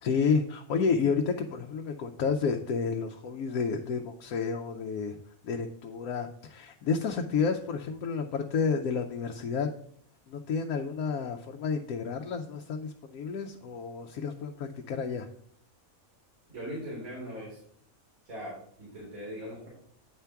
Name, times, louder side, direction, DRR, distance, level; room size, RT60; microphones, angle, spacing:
voice 1, 0.0-5.2 5.4-9.7 10.3-15.3, left 5 dB, 85° left, 4 dB, 1.1 m, -30 dB
voice 2, 16.5-17.6 18.2-19.7, equal, 80° right, -5 dB, 2.8 m, -40 dB
9.4 x 3.4 x 5.7 m, 0.63 s
omnidirectional pair, 1.5 m